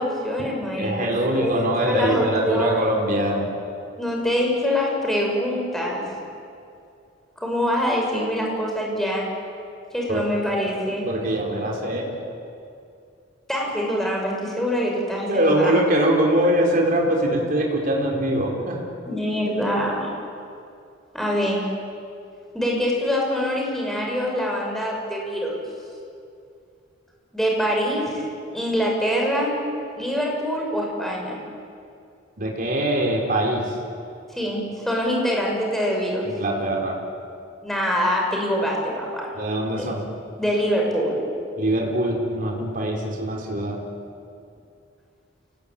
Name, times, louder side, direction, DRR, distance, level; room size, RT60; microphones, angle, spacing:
voice 1, 0.0-2.9 4.0-6.0 7.4-9.3 9.9-11.1 13.5-15.8 19.1-20.1 21.1-21.6 22.5-25.6 27.3-28.2 28.5-29.5 29.9-31.4 34.3-36.3 37.6-39.3 39.7-39.8 40.4-41.2, equal, ahead, -2 dB, 6.3 m, -24 dB
voice 2, 0.8-3.5 10.1-10.2 11.0-12.2 15.3-18.8 32.4-33.7 36.2-37.0 39.3-40.0 41.6-43.8, right 1 dB, 45° right, -1 dB, 4.5 m, -23 dB
29.0 x 19.0 x 9.0 m, 2.5 s
head